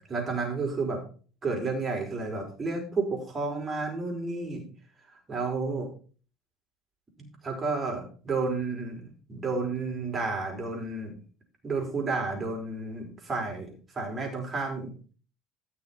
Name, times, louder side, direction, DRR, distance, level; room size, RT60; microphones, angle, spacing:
voice 1, 0.1-1.0 1.4-4.6 5.3-5.9 7.2-11.2 11.6-14.9, right 3 dB, 25° right, 1 dB, 5.3 m, -31 dB
15.0 x 6.5 x 4.5 m, 0.40 s
figure-of-eight pair, 65°, 0 cm